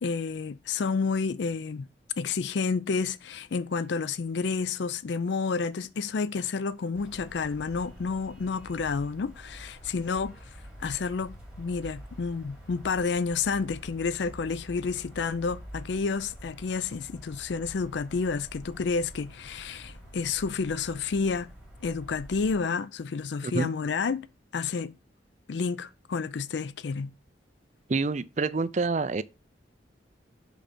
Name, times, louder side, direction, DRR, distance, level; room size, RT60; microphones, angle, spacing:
voice 1, 0.0-1.9 2.2-10.4 10.8-21.5 21.8-24.3 24.5-24.9 25.5-27.1, left 5 dB, 70° left, 0.4 m, -30 dB
sound 1, 6.9-22.6, equal, 5° right, 3.5 m, -47 dB
voice 2, 27.9-29.2, right 3 dB, 40° right, 0.5 m, -27 dB
6.2 x 5.6 x 5.0 m
head